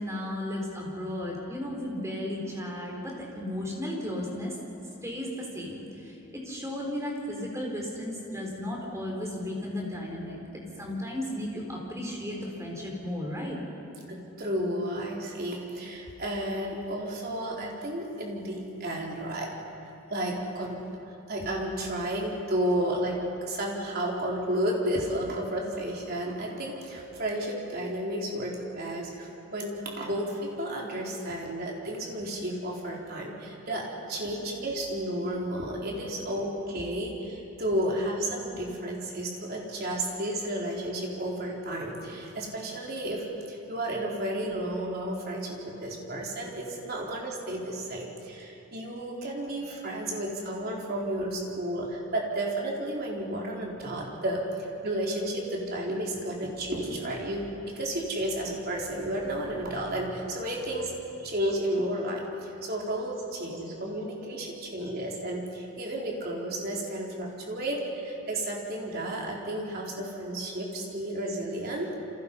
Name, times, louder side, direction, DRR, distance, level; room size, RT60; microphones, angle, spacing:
voice 1, 0.0-4.6 5.0-10.4 10.8-13.6 50.1-50.2 61.2-61.3, left 1 dB, 15° right, -1 dB, 4.6 m, -34 dB
voice 2, 14.1-19.5 20.1-20.8 21.3-54.4 54.8-60.9 61.2-71.9, right 1 dB, 45° right, -2 dB, 4.1 m, -32 dB
29.0 x 26.5 x 5.5 m, 2.9 s
head